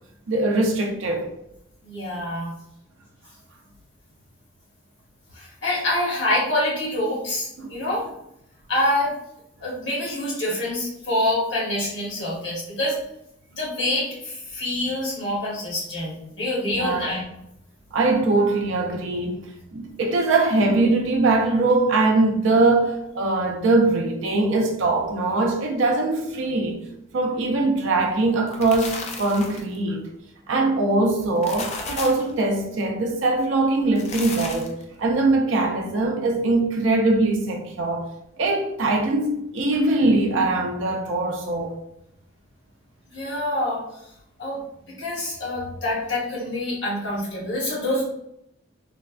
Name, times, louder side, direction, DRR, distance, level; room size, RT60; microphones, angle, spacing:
voice 1, 0.3-1.3 7.6-7.7 16.7-17.2 17.9-26.8 27.1-30.1 30.5-34.7 35.0-38.1 38.4-41.8, right 2 dB, 80° right, 0.5 m, -22 dB
voice 2, 1.8-2.5 5.3-8.0 8.7-9.1 9.6-13.0 13.6-17.2 43.1-43.8 44.4-44.6 44.8-48.1, left 1 dB, 65° left, 1.3 m, -26 dB
sound 1, 28.3-29.8 31.2-32.3 33.8-34.8, left 4 dB, 35° left, 0.3 m, -34 dB
3.2 x 2.2 x 2.4 m
head